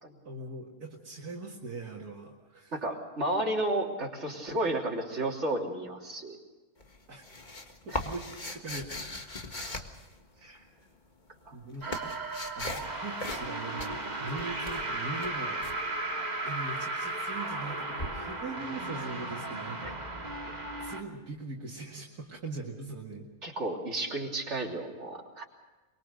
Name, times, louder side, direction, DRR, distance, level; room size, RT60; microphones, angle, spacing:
voice 1, 0.2-2.7 7.1-7.2 7.9-8.9 10.4-10.7 11.5-12.3 12.6-16.0 16.4-20.3 20.8-23.3, right 3 dB, 70° right, -1 dB, 2.6 m, -41 dB
voice 2, 2.7-6.4 7.9-8.1 9.5-9.9 11.5-11.6 11.9-12.1 19.8-19.9 20.5-20.6 23.4-25.5, right 1 dB, 45° right, -1 dB, 3.5 m, -33 dB
sound 1, 6.8-10.6 11.3-12.9 13.2-13.5 13.8-15.8 18.0-18.1, left 2 dB, 30° left, 1.8 m, -39 dB
sound 2, 11.8-21.0, right 2 dB, 25° right, 2.0 m, -35 dB
23.5 x 23.0 x 6.5 m, 1.2 s
omnidirectional pair, 1.7 m